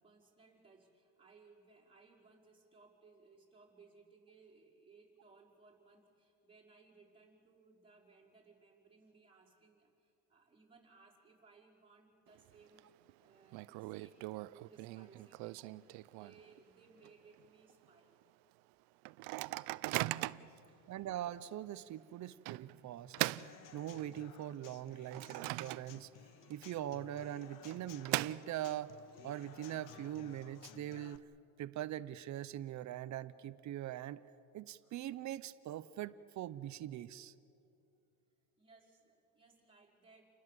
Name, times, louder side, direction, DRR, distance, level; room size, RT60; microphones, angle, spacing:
voice 1, 0.0-14.3 14.5-15.8 16.1-18.2 20.5-20.9 38.6-40.2, right 4 dB, 15° right, -4 dB, 5.2 m, -64 dB
Microwave oven, 12.3-12.8 13.1-13.2 13.5-16.6 17.0-17.1 17.4-17.7 18.2-18.3 19.0-20.6 21.2-21.3 22.5-24.3 24.7-26.2 26.5-26.6 27.5-28.9, right 20 dB, 80° right, 0.7 m, -40 dB
voice 2, 20.9-23.3 23.7-26.1 26.5-28.9 29.2-31.2 31.6-34.2 34.5-37.3, right 12 dB, 45° right, 14 dB, 0.7 m, -42 dB
Human voice / Acoustic guitar / Drum, 23.2-31.2, left 10 dB, 50° left, 1.1 m, -57 dB
29.5 x 20.5 x 7.6 m, 2.7 s
cardioid pair, 135°, 40 cm